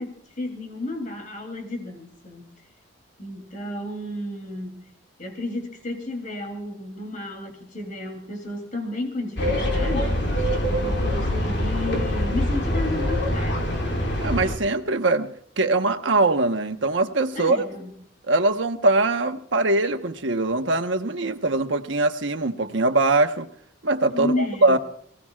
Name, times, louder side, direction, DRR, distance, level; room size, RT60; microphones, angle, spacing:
voice 1, 0.0-2.5 3.2-4.8 5.2-10.3 10.7-14.0 17.3-17.9 24.1-24.8, left 2 dB, 45° left, 3 dB, 3.1 m, -32 dB
sound 1, 9.4-14.6, left 1 dB, 65° left, 2.8 m, -24 dB
voice 2, 14.2-15.3 15.6-17.6 18.2-23.5 23.8-24.8, right 2 dB, 80° right, 6 dB, 1.2 m, -22 dB
27.5 x 17.5 x 2.4 m, 0.63 s
head